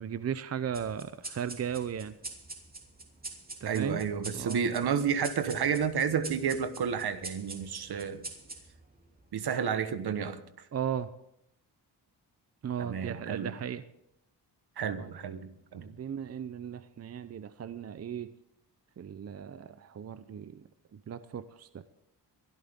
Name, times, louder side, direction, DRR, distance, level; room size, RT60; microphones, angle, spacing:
voice 1, 0.0-2.2 3.6-4.0 4.3-4.7 10.7-11.1 12.6-13.8 15.0-15.1 15.8-18.3 19.0-21.8, right 8 dB, 40° right, 0.6 m, -36 dB
sound 1, 0.7-9.6, right 2 dB, 20° right, 2.9 m, -45 dB
voice 2, 3.7-8.2 9.3-10.4 12.8-13.5 14.8-15.9, right 7 dB, 65° right, 1.3 m, -31 dB
22.5 x 13.0 x 3.6 m
wide cardioid pair, 120°, 41 cm